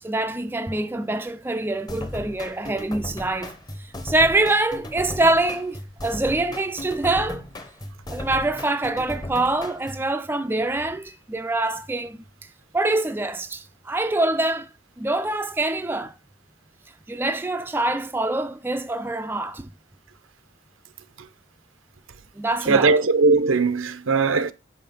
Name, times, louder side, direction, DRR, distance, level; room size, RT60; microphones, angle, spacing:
voice 1, 0.0-7.4 8.1-14.7 15.0-16.1 17.1-19.7 22.4-23.0, right 2 dB, 10° right, 0.3 m, -25 dB
sound 1, 1.9-10.1, left 1 dB, 20° left, 0.7 m, -36 dB
voice 2, 22.7-24.5, right 4 dB, 85° right, 0.7 m, -19 dB
5.6 x 5.1 x 5.3 m
head